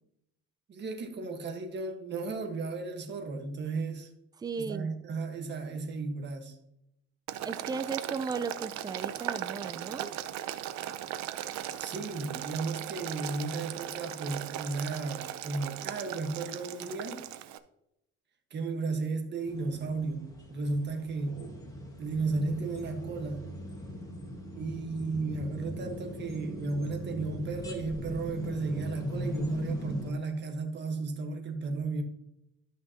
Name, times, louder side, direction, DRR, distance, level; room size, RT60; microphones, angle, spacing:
voice 1, 0.7-4.1 4.6-6.6 11.8-17.3 18.5-21.5 22.0-23.5 24.5-32.0, right 3 dB, 35° right, 1.5 m, -34 dB
voice 2, 4.4-5.0 7.4-10.2, right 5 dB, 15° right, 0.3 m, -36 dB
Boiling, 7.3-17.6, right 12 dB, 65° right, 0.7 m, -38 dB
sound 1, 19.5-30.1, equal, 10° left, 1.7 m, -39 dB
12.5 x 5.9 x 2.9 m
cardioid pair, 145°, 30 cm